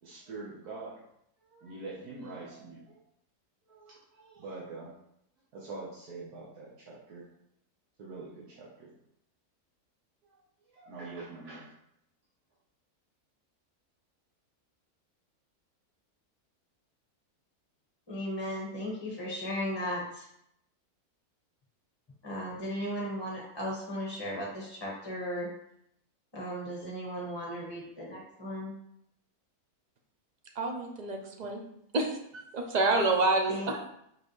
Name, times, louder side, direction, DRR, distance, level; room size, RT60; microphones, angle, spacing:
voice 1, 0.0-1.0 1.4-3.0 3.7-4.9 5.5-7.3 8.0-8.9 10.2-10.4 10.7-11.7, right 3 dB, 80° right, -6 dB, 1.8 m, -44 dB
voice 2, 18.1-20.2 22.2-25.5 26.3-28.7 33.5-33.9, equal, 15° left, -3 dB, 1.3 m, -36 dB
voice 3, 30.6-31.6 31.9-33.9, right 2 dB, 35° right, 2 dB, 0.7 m, -28 dB
5.9 x 5.4 x 3.2 m, 0.75 s
omnidirectional pair, 1.6 m